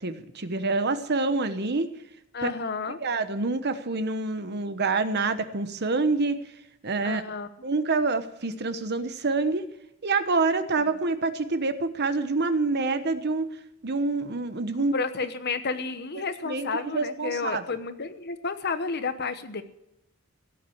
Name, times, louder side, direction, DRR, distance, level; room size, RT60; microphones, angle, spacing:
voice 1, 0.0-1.9 2.4-2.5 3.0-6.4 6.8-7.2 7.6-9.7 10.0-13.5 13.8-14.9 16.4-17.6, right 3 dB, 55° right, 10 dB, 1.1 m, -27 dB
voice 2, 2.3-3.0 7.0-7.5 14.9-19.6, left 4 dB, 50° left, 10 dB, 1.1 m, -31 dB
17.0 x 7.8 x 8.6 m, 0.85 s
head